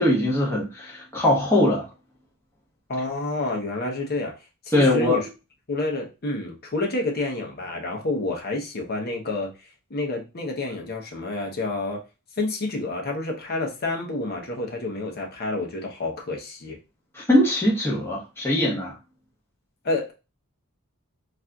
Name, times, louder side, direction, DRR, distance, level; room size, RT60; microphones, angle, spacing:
voice 1, 0.0-1.9 4.7-5.2 17.1-18.9, left 1 dB, 10° left, 1.0 m, -21 dB
voice 2, 2.9-4.3 4.6-5.3 5.7-9.5 9.9-12.0 12.4-16.8 19.8-20.1, left 2 dB, 45° left, 0.8 m, -29 dB
4.1 x 2.5 x 2.3 m
head